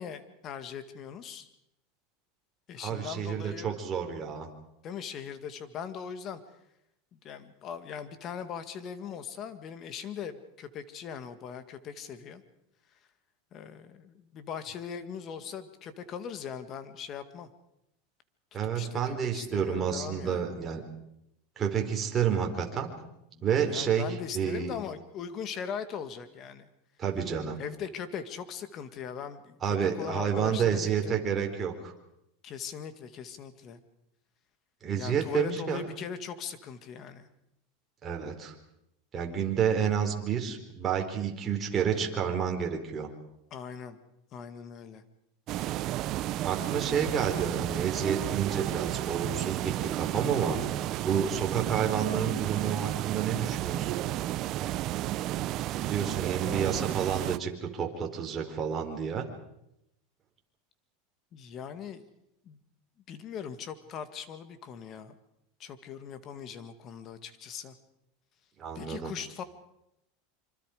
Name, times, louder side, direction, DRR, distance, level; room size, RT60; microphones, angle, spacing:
voice 1, 0.0-1.5 2.7-3.8 4.8-6.4 7.1-12.4 13.5-17.5 18.6-20.5 23.3-26.7 27.6-31.2 32.4-33.8 34.9-37.3 43.5-44.0 44.3-45.0 56.5-56.9 61.3-62.0 62.5-62.6 63.1-65.2 65.6-67.8 68.8-69.4, left 7 dB, 40° left, 10 dB, 2.1 m, -40 dB
voice 2, 2.8-4.5 18.5-20.8 21.6-22.9 23.4-24.7 27.0-27.6 29.6-31.9 34.8-35.8 38.0-38.6 39.1-43.1 46.4-50.6 51.0-53.9 55.8-59.3 68.6-69.1, right 7 dB, 25° right, 2 dB, 4.0 m, -30 dB
sound 1, 45.5-57.4, right 14 dB, 45° right, 0.8 m, -32 dB
26.5 x 25.0 x 5.1 m, 0.82 s
supercardioid pair, 130°, 0 cm